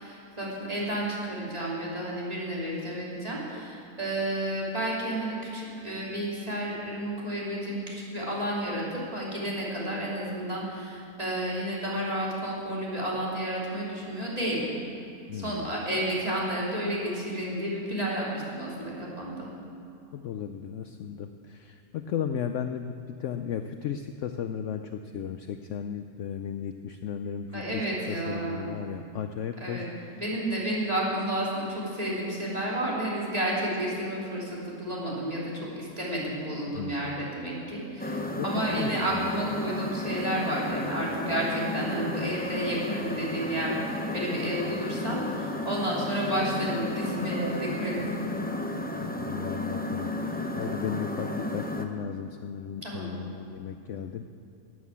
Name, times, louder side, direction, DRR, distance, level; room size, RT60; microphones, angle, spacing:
voice 1, 0.0-14.7 15.3-19.5 27.5-28.6 29.6-29.9 30.1-48.4 52.8-53.1, right 1 dB, 25° right, -5 dB, 3.3 m, -31 dB
voice 2, 15.3-15.7 20.1-22.9 23.2-30.2 36.8-37.2 38.4-39.4 49.0-54.3, left 8 dB, 65° left, 8 dB, 0.8 m, -35 dB
sound 1, 38.0-51.9, left 1 dB, 10° left, 0.4 m, -33 dB
12.5 x 9.3 x 8.4 m, 2.7 s
omnidirectional pair, 1.6 m